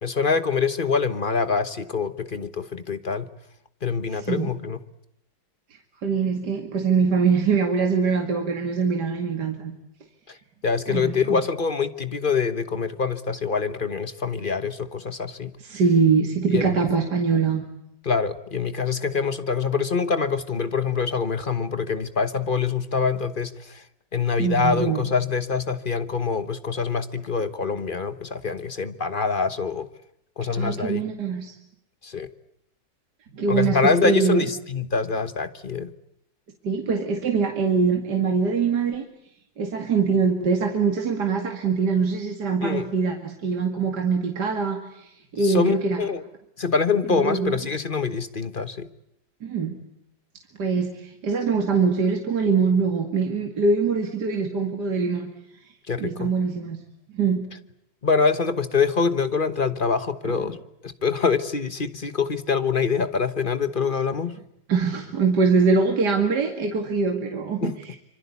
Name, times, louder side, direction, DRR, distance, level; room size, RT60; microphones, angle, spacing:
voice 1, 0.0-3.3 3.8-4.8 10.3-10.4 10.6-15.5 16.5-16.9 18.0-23.8 24.1-29.9 30.4-31.0 32.0-32.3 33.5-35.9 42.6-42.9 45.4-46.2 46.6-48.9 55.9-56.3 58.0-60.6 60.8-64.4 67.6-67.7, left 5 dB, 35° left, 12 dB, 1.2 m, -25 dB
voice 2, 4.1-4.5 6.0-9.7 10.9-11.4 15.6-17.6 24.4-25.1 30.5-31.5 33.3-34.4 36.6-39.0 39.6-46.0 47.1-47.5 49.4-49.8 50.6-55.3 56.0-56.8 57.1-57.4 60.2-60.4 64.7-68.0, right 5 dB, 65° right, 4 dB, 2.8 m, -23 dB
26.0 x 25.0 x 8.3 m, 0.78 s
omnidirectional pair, 1.9 m